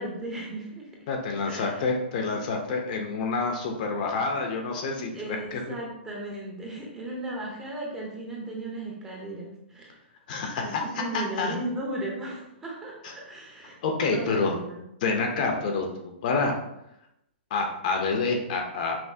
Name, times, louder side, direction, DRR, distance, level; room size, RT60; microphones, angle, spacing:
voice 1, 0.0-0.9 1.4-1.8 4.2-4.3 5.0-9.9 10.6-13.8 14.1-14.8, right 1 dB, 10° right, -2 dB, 0.8 m, -36 dB
voice 2, 1.1-5.7 10.3-11.5 13.8-14.6 15.0-15.9 16.2-16.5 17.5-19.0, left 4 dB, 45° left, 2 dB, 0.8 m, -28 dB
5.8 x 2.7 x 2.8 m, 0.83 s
hypercardioid pair, 155°, 6 cm